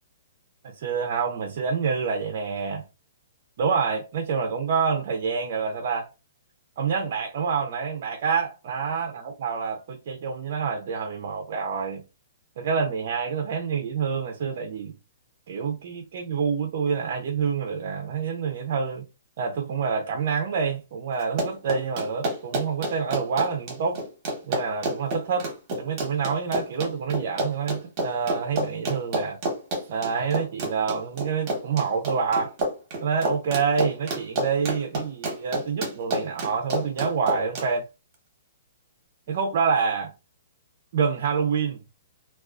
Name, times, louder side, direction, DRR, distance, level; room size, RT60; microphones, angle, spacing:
voice 1, 0.6-2.8 3.6-6.1 6.8-12.0 12.6-14.9 15.5-19.1 19.4-24.0 24.4-25.5 25.8-29.4 29.9-32.5 33.0-37.9 39.3-40.1 40.9-41.8, right 6 dB, 55° right, 0.4 m, -27 dB
Run, 21.2-37.7, right 1 dB, 35° right, 1.0 m, -29 dB
2.3 x 2.2 x 2.3 m
hypercardioid pair, 150°, 0 cm